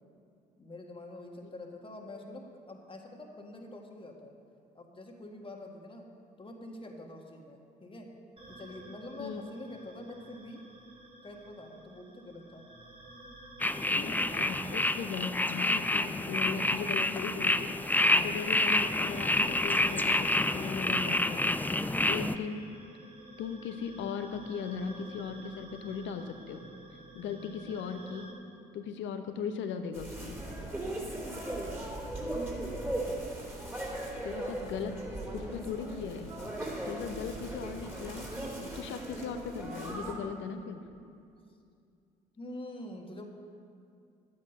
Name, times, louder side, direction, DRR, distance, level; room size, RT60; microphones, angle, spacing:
voice 1, 0.6-4.3 4.7-6.1 6.4-8.1 8.5-10.6 11.2-12.7 13.6-14.2 27.2-27.9 31.5-33.0 42.4-43.2, left 1 dB, 25° left, 1 dB, 1.8 m, -46 dB
sound 1, 8.4-28.3, right 1 dB, 25° right, 2.4 m, -51 dB
voice 2, 9.2-9.5 13.9-21.6 22.1-22.6 23.4-26.7 27.1-28.3 28.7-30.4 34.2-35.0 35.3-36.3 36.8-38.3 38.7-40.8, left 6 dB, 65° left, 8 dB, 0.9 m, -38 dB
sound 2, 13.6-22.3, left 2 dB, 10° left, 0.5 m, -28 dB
sound 3, 29.9-40.1, right 1 dB, 10° right, 3.4 m, -38 dB
11.5 x 8.7 x 5.5 m, 2.4 s
hypercardioid pair, 50°, 21 cm